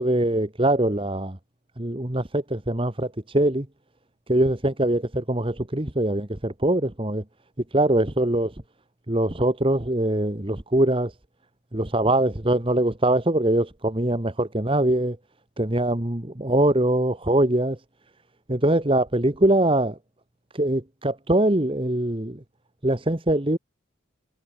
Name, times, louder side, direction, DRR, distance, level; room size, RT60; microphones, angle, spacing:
voice 1, 0.0-1.4 1.8-3.7 4.3-7.2 7.7-8.5 9.1-11.1 11.7-15.2 15.6-17.8 18.5-20.0 20.5-22.4 22.8-23.6, right 1 dB, 25° right, 1.4 m, -23 dB
head